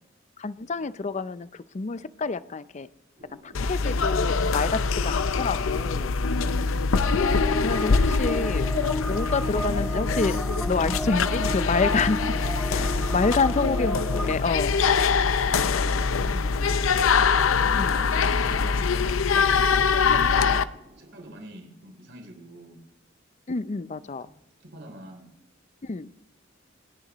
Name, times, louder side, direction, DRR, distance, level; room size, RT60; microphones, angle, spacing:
voice 1, 0.4-2.9 3.4-6.1 7.6-8.7 9.1-10.4 10.6-12.3 12.6-14.8 17.8-18.0 23.5-24.3 25.8-26.1, left 4 dB, 35° left, 15 dB, 0.5 m, -28 dB
sound 1, 3.2-21.4, equal, 40° right, 5.0 m, -51 dB
sound 2, 3.5-20.6, left 5 dB, 85° left, 0.6 m, -24 dB
voice 2, 6.3-6.8 12.7-13.4 15.2-16.8 17.5-20.6 21.0-22.8 24.2-24.3 24.6-25.3, right 1 dB, 60° right, 3 dB, 3.3 m, -44 dB
sound 3, 6.9-14.3, equal, ahead, 0.8 m, -34 dB
27.5 x 10.5 x 3.1 m, 0.88 s
head